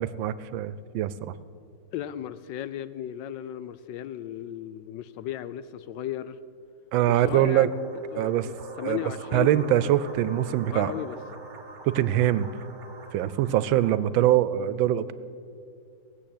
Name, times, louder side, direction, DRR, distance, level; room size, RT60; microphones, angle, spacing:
voice 1, 0.0-1.3 6.9-7.7 8.2-8.5 8.8-9.0 9.3-10.9 11.8-12.5 13.1-15.1, right 12 dB, 80° right, 1.4 m, -23 dB
voice 2, 1.9-6.4 7.1-7.7 8.1-10.1 10.7-11.2, left 11 dB, 75° left, 1.2 m, -35 dB
sound 1, 7.3-14.0, right 4 dB, 40° right, 1.3 m, -44 dB
18.0 x 7.7 x 8.6 m
omnidirectional pair, 2.1 m